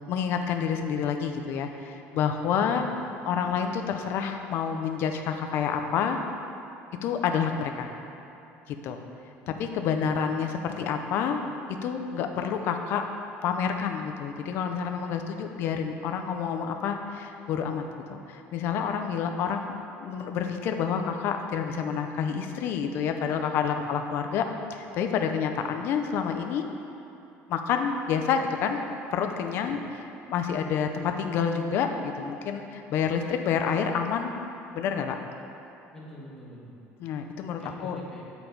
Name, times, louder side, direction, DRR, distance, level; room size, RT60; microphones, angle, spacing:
voice 1, 0.1-2.9 3.3-6.2 7.0-7.9 8.7-9.0 9.5-11.4 11.8-13.1 13.4-19.7 20.0-26.7 27.5-28.8 29.1-34.3 34.7-35.2 37.0-38.0, left 7 dB, 50° left, 5 dB, 0.5 m, -28 dB
voice 2, 35.9-36.8 37.6-38.2, right 1 dB, 10° left, -5 dB, 1.1 m, -46 dB
8.7 x 4.0 x 4.5 m, 2.8 s
cardioid pair, 165°, 5 cm